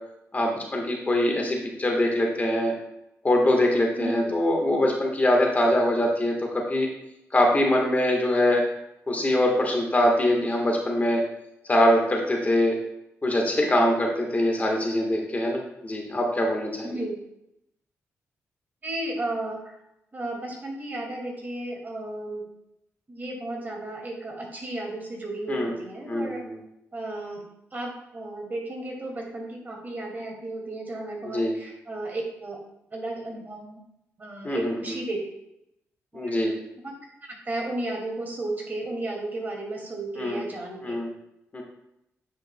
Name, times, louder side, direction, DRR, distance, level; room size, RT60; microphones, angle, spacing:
voice 1, 0.3-2.7 3.2-6.9 7.3-8.6 9.1-11.2 11.7-12.7 13.2-16.9 25.5-25.7 26.1-26.6 31.3-31.5 34.4-34.7 36.1-36.5 40.2-40.4 40.8-41.1 41.5-41.6, left 1 dB, 30° left, 0 dB, 1.3 m, -23 dB
voice 2, 4.0-4.3 16.8-17.2 18.8-19.8 20.1-22.4 23.1-26.4 26.9-27.4 27.7-32.6 32.9-33.8 34.2-35.2 36.1-36.4 36.8-36.9 37.2-41.0, right 2 dB, 35° right, -1 dB, 2.1 m, -33 dB
9.3 x 5.0 x 2.2 m, 0.82 s
cardioid pair, 75°, 5 cm